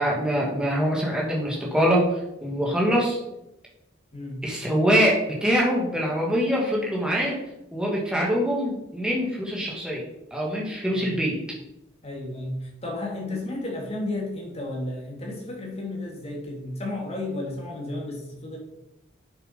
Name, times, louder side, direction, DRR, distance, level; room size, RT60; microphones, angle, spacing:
voice 1, 0.0-2.1 2.4-3.2 4.4-7.4 7.7-10.0 10.3-11.4, equal, 5° right, -3 dB, 2.6 m, -24 dB
voice 2, 12.0-18.6, left 2 dB, 30° left, -1 dB, 2.7 m, -33 dB
7.9 x 7.5 x 5.8 m, 0.89 s
head